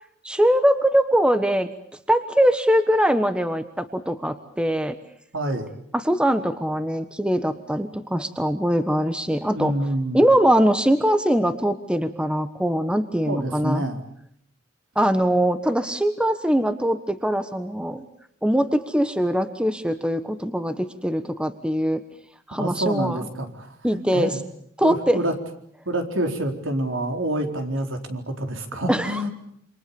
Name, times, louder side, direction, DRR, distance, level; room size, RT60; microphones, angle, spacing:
voice 1, 0.2-1.7 2.1-5.0 5.9-9.7 10.1-13.8 14.9-18.1 18.4-22.0 22.5-23.3 23.8-24.3 24.8-25.2 28.9-29.3, equal, 5° right, 10 dB, 1.2 m, -22 dB
voice 2, 5.3-5.7 9.5-10.2 13.3-14.0 22.6-24.4 24.8-25.3 25.9-29.3, right 1 dB, 70° right, 5 dB, 4.2 m, -27 dB
28.0 x 26.0 x 7.0 m, 0.69 s
head